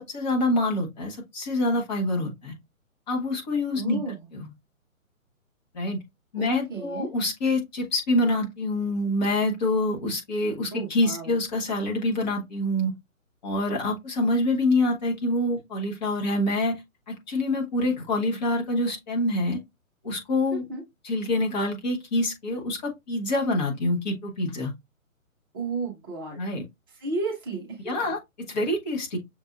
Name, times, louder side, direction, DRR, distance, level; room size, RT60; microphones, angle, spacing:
voice 1, 0.0-2.5 3.1-4.0 4.3-4.5 5.7-6.0 6.3-12.9 13.4-16.8 17.1-19.6 20.0-20.6 21.0-24.7 26.4-26.6 27.8-29.2, left 1 dB, 30° left, 1.2 m, -26 dB
voice 2, 3.7-4.3 6.3-7.1 10.7-11.4 20.5-20.8 25.5-26.4 26.9-28.0, right 3 dB, 15° right, 0.7 m, -33 dB
6.5 x 2.6 x 2.4 m
figure-of-eight pair, 140°, 42 cm